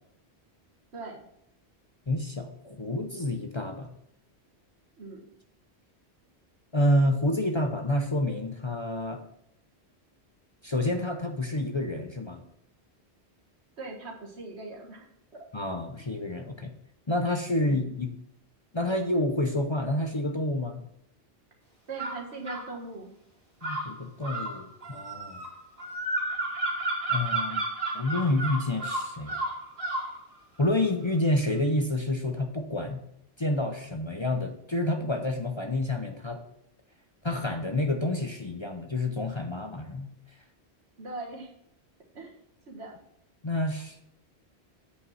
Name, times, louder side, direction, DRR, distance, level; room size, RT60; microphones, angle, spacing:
voice 1, 0.9-1.2 5.0-5.3 13.8-15.1 15.3-15.5 17.7-17.9 21.9-23.1 41.0-41.5 42.1-42.3 42.7-43.0, right 3 dB, 75° right, 0 dB, 1.9 m, -40 dB
voice 2, 2.1-3.9 6.7-9.2 10.6-12.4 15.5-16.7 17.1-18.1 18.7-20.8 23.6-25.4 27.1-27.7 27.9-29.4 30.6-33.0 33.4-36.4 37.2-40.1 43.4-44.0, left 1 dB, 30° left, 4 dB, 0.7 m, -28 dB
sound 1, 22.0-22.7 23.6-30.1, right 2 dB, 55° right, 2.6 m, -32 dB
8.2 x 5.5 x 5.6 m, 0.76 s
omnidirectional pair, 1.1 m